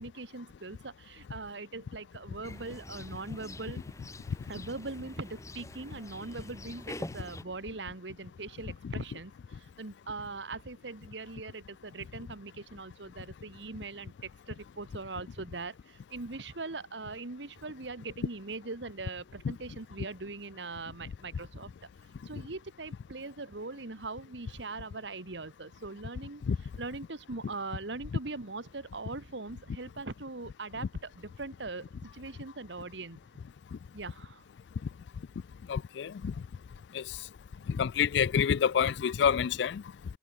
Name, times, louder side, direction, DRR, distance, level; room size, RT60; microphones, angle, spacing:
voice 1, 0.0-3.8 4.5-21.7 22.0-33.2 33.9-34.4 39.4-39.5, right 3 dB, 80° right, 1.6 m, -41 dB
sound 1, 2.4-7.4, left 1 dB, 15° left, 1.4 m, -45 dB
voice 2, 35.7-36.3 36.9-37.0 37.7-39.8, left 7 dB, 70° left, 0.3 m, -27 dB
head